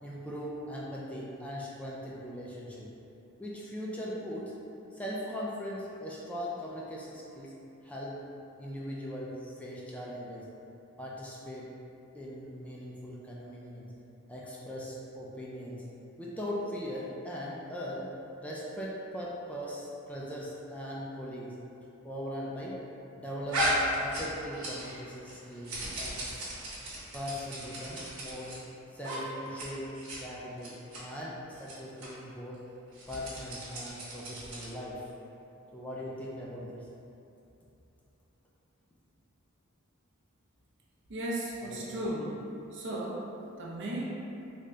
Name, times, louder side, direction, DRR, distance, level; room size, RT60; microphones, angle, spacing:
voice 1, 0.0-2.9 3.4-4.5 4.9-7.5 7.8-8.2 8.6-10.5 11.0-11.7 12.1-13.9 14.3-15.8 16.2-18.1 18.4-21.5 22.0-22.8 23.1-26.4 27.1-28.5 28.9-29.9 30.2-32.6 33.1-35.1 35.7-36.9 41.6-41.9, equal, 5° left, -5 dB, 0.3 m, -40 dB
sound 1, 23.5-25.0 25.3-28.6 29.0-29.2 29.5-29.7 29.9-30.2 30.6-31.0 31.6-31.7 32.0-32.1 32.9-34.8, equal, 85° right, 1.0 m, -35 dB
voice 2, 41.1-42.4 42.7-43.3 43.6-44.1, right 1 dB, 60° right, -4 dB, 0.6 m, -35 dB
3.4 x 2.1 x 3.7 m, 2.8 s
head